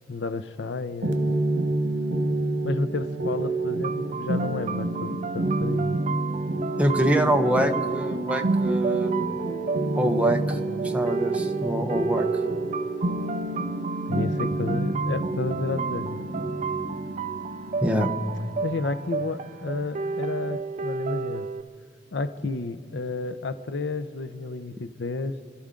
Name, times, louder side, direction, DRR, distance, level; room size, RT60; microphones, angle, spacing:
voice 1, 0.1-1.3 2.6-6.0 14.1-16.3 18.6-21.5 22.1-25.4, left 3 dB, 65° left, 12 dB, 0.6 m, -31 dB
sound 1, 1.0-20.6, right 2 dB, 85° right, 1.2 m, -28 dB
sound 2, 3.8-21.6, right 5 dB, 40° right, 0.4 m, -33 dB
voice 2, 6.8-9.1 10.0-10.6 10.8-12.3 17.8-18.1, equal, 5° right, 4 dB, 0.9 m, -25 dB
29.0 x 12.5 x 3.8 m, 2.2 s
head